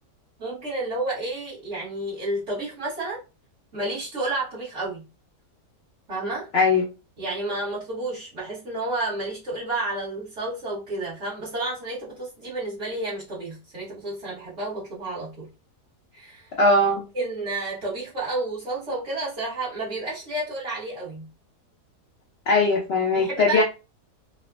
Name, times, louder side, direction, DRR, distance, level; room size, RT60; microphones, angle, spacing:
voice 1, 0.4-3.2 3.7-5.0 6.1-6.5 7.2-15.5 16.1-16.5 17.1-21.3 23.1-23.6, right 2 dB, 50° right, 1.5 m, -31 dB
voice 2, 6.5-6.8 16.6-17.0 22.5-23.6, left 2 dB, 70° left, 0.6 m, -19 dB
3.2 x 2.1 x 2.3 m
omnidirectional pair, 1.7 m